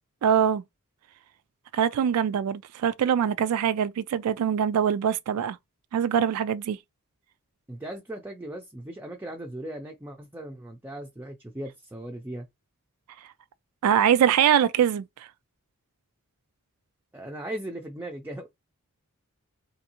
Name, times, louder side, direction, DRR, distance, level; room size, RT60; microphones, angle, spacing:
voice 1, 0.2-0.6 1.7-5.6 5.9-6.8 13.8-15.1, right 8 dB, 80° right, 0.3 m, -23 dB
voice 2, 7.7-12.5 17.1-18.5, right 1 dB, 10° right, 0.4 m, -38 dB
3.3 x 2.6 x 2.7 m
head